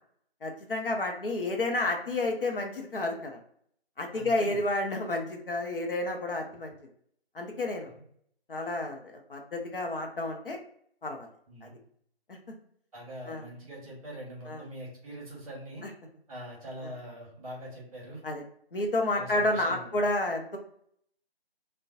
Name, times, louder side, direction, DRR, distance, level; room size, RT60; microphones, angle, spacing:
voice 1, 0.4-3.4 4.0-6.7 7.3-7.9 8.5-9.0 9.3-10.6 11.0-11.3 11.6-11.7 12.3-12.5 13.3-13.4 14.5-14.6 15.8-15.9 18.2-18.4 18.7-20.6, left 2 dB, 60° left, 2 dB, 0.6 m, -30 dB
voice 2, 4.1-4.6 11.5-11.7 12.9-15.8 16.3-18.2 19.1-20.0, right 1 dB, 35° right, -3 dB, 1.0 m, -43 dB
2.5 x 2.2 x 2.4 m, 0.66 s
figure-of-eight pair, 160°, 31 cm